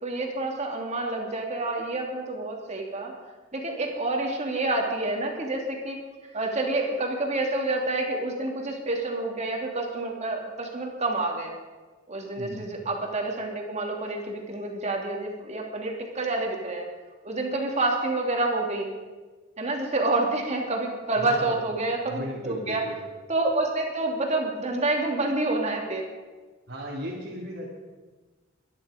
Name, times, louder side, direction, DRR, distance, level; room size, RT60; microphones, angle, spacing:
voice 1, 0.0-3.1 3.5-6.0 6.3-11.6 12.1-16.9 17.2-18.9 19.6-22.8 23.3-26.1, right 2 dB, 35° right, 1 dB, 2.8 m, -28 dB
voice 2, 21.1-21.6 22.0-22.9 26.7-27.7, equal, 65° right, -6 dB, 3.0 m, -36 dB
23.0 x 11.0 x 5.1 m, 1.3 s
head